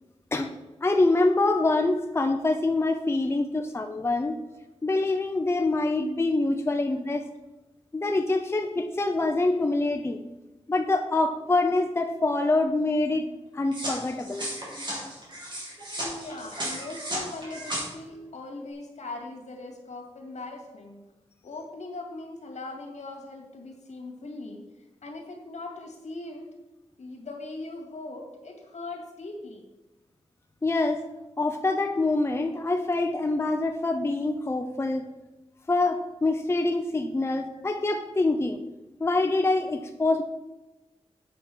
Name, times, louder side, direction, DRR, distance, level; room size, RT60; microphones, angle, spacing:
voice 1, 0.8-4.4 4.8-7.3 7.9-10.2 10.7-13.3 13.5-14.5 30.6-31.0 31.4-35.1 35.7-38.6 39.0-40.2, left 2 dB, 20° left, 5 dB, 0.6 m, -25 dB
sound 1, 13.7-17.8, right 1 dB, 40° right, 3.7 m, -35 dB
voice 2, 16.0-21.0 21.4-26.5 27.0-29.6 37.5-37.6, left 2 dB, 75° left, 2 dB, 2.3 m, -40 dB
8.3 x 7.4 x 6.2 m, 1.1 s
wide cardioid pair, 145°, 12 cm